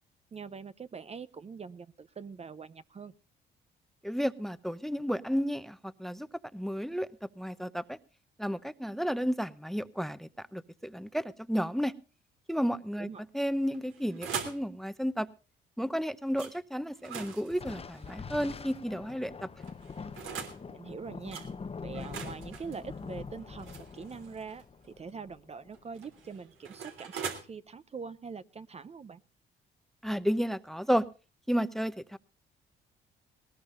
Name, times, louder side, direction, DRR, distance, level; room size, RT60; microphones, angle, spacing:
voice 1, 0.3-3.1 13.0-13.2 20.7-21.5 21.8-29.2, right 5 dB, 30° right, 13 dB, 0.6 m, -43 dB
voice 2, 4.0-6.3 6.5-7.1 7.4-8.0 8.4-11.9 12.5-13.1 13.3-15.3 15.8-19.5 30.0-31.1 31.5-32.2, equal, ahead, 16 dB, 0.8 m, -32 dB
sound 1, 13.7-14.7 16.4-16.5 16.9-18.8 19.6-20.6 21.3-21.5 21.9-24.6 25.7-27.4, right 7 dB, 85° right, 3.1 m, -42 dB
Thunder, 17.5-26.3, left 5 dB, 30° left, 0.9 m, -44 dB
19.5 x 18.5 x 2.5 m, 0.32 s
cardioid pair, 90°, 20 cm